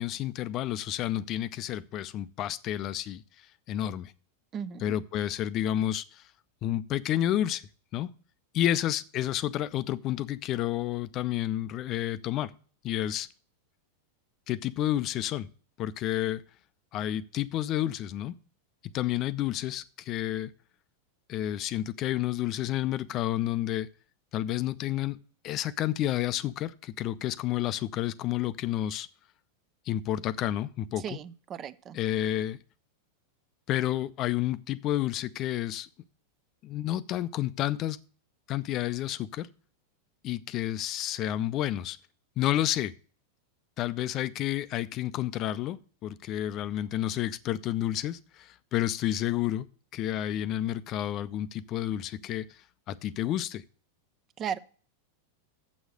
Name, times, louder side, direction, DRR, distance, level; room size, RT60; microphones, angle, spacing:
voice 1, 0.0-4.1 4.8-6.3 6.6-7.6 7.9-8.1 8.5-12.5 12.8-13.3 14.5-15.5 15.8-16.4 16.9-18.3 18.9-20.5 21.3-23.9 24.3-25.2 25.4-29.1 29.9-31.0 31.9-32.6 33.7-35.9 36.6-38.0 38.5-39.5 40.2-42.0 42.4-42.9 43.8-49.7 49.9-53.6, left 13 dB, 35° left, 17 dB, 0.5 m, -30 dB
voice 2, 4.5-4.9 31.0-32.0 54.4-54.6, right 8 dB, 30° right, 16 dB, 0.5 m, -36 dB
7.8 x 6.4 x 6.4 m, 0.41 s
figure-of-eight pair, 90°, 0 cm